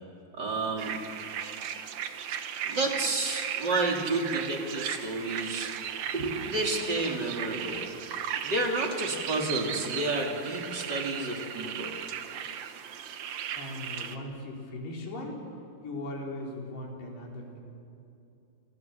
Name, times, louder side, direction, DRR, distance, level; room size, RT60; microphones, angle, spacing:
voice 1, 0.3-0.9 2.6-7.9 8.4-11.9, right 2 dB, 25° right, 0 dB, 3.2 m, -31 dB
sound 1, 0.8-14.2, right 9 dB, 75° right, 1.6 m, -36 dB
voice 2, 13.5-15.4 15.8-17.6, left 1 dB, 70° left, 0 dB, 6.0 m, -38 dB
30.0 x 27.0 x 7.2 m, 2.7 s
omnidirectional pair, 5.0 m